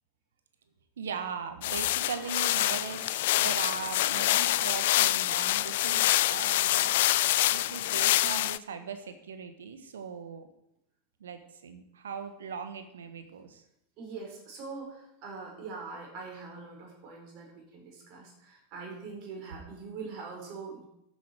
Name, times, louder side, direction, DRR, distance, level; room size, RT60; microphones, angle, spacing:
voice 1, 1.0-10.5 11.2-13.6, right 6 dB, 70° right, 9 dB, 1.4 m, -39 dB
sound 1, 1.6-8.6, left 16 dB, 60° left, 0.3 m, -26 dB
voice 2, 14.0-20.8, right 4 dB, 45° right, -1 dB, 5.0 m, -43 dB
14.0 x 8.1 x 4.8 m, 0.80 s
figure-of-eight pair, 85°, 0 cm